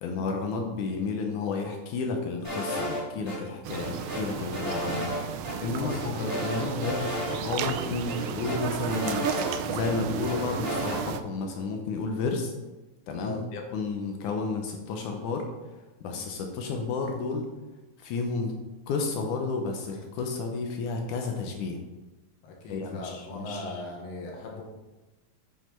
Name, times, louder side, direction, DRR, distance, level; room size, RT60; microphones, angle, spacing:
voice 1, 0.0-7.1 7.4-9.3 9.7-12.5 13.1-15.5 16.0-17.5 18.0-18.5 18.9-21.8 22.7-23.8, left 4 dB, 70° left, 3 dB, 2.1 m, -31 dB
sound 1, 2.4-3.4 3.7-5.2 5.4-5.5 5.9-7.4 7.6-7.7 8.1-9.9 10.2-11.0, equal, 5° left, 2.7 m, -33 dB
sound 2, 3.6-11.2, right 9 dB, 80° right, 2.0 m, -34 dB
voice 2, 22.4-24.6, left 2 dB, 90° left, -1 dB, 3.3 m, -39 dB
9.1 x 5.6 x 4.5 m, 1.1 s
omnidirectional pair, 4.0 m